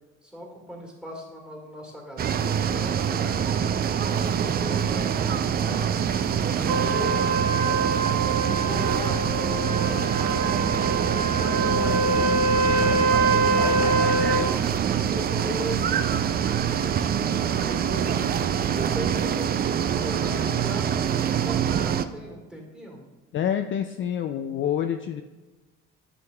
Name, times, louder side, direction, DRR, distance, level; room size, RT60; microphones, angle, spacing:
voice 1, 0.2-3.7 4.2-6.0 6.5-7.5 8.0-9.2 9.6-12.4 13.0-15.8 16.2-18.3 18.7-23.0, equal, 5° right, 0 dB, 1.8 m, -38 dB
sound 1, 2.2-22.1, right 8 dB, 35° right, 0.4 m, -25 dB
Trumpet, 6.7-14.5, right 3 dB, 70° right, 1.4 m, -25 dB
voice 2, 23.3-25.2, left 9 dB, 45° left, 6 dB, 0.4 m, -27 dB
9.4 x 5.3 x 2.3 m, 1.2 s
cardioid pair, 95°, 29 cm